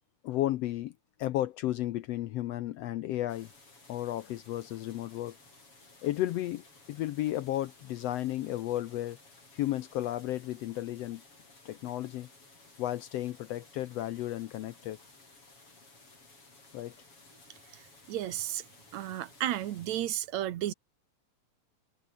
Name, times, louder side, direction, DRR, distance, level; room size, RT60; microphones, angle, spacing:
voice 1, 0.2-0.9 1.2-3.5 3.9-5.4 6.0-9.2 9.5-11.2 11.6-12.3 12.8-15.0 16.7-16.9, left 14 dB, 75° left, 1.6 m, -33 dB
sound 1, 3.3-19.9, left 3 dB, 45° left, 8.6 m, -57 dB
voice 2, 17.7-18.6 18.9-20.7, right 12 dB, 75° right, 2.3 m, -33 dB
omnidirectional pair, 3.4 m